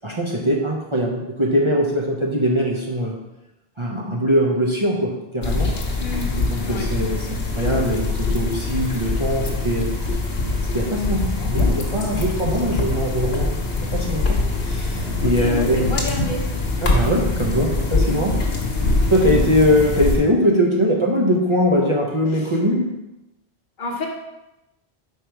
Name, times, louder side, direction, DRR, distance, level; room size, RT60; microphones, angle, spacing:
voice 1, 0.0-3.2 3.8-5.7 6.4-9.9 10.7-13.6 13.9-15.8 16.8-18.4 19.1-22.9, equal, 30° right, -2 dB, 0.7 m, -21 dB
sound 1, 5.4-20.2, left 3 dB, 70° left, 1.3 m, -23 dB
voice 2, 6.0-6.3 6.6-6.9 15.2-16.5 18.0-18.3 19.2-19.5 22.3-22.5 23.8-24.1, left 2 dB, 50° left, 0 dB, 1.0 m, -29 dB
5.0 x 4.6 x 4.5 m, 0.96 s
omnidirectional pair, 1.1 m